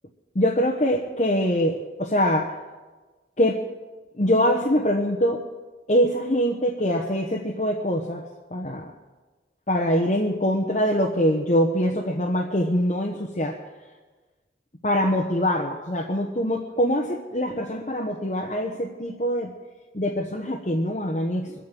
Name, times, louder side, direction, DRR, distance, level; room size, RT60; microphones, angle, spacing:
voice 1, 0.3-2.6 3.4-3.6 4.2-5.4 5.9-8.2 8.5-8.9 9.7-13.6 14.8-19.5 19.9-21.5, equal, 40° left, 1 dB, 1.1 m, -23 dB
22.5 x 8.4 x 7.6 m, 1.3 s
head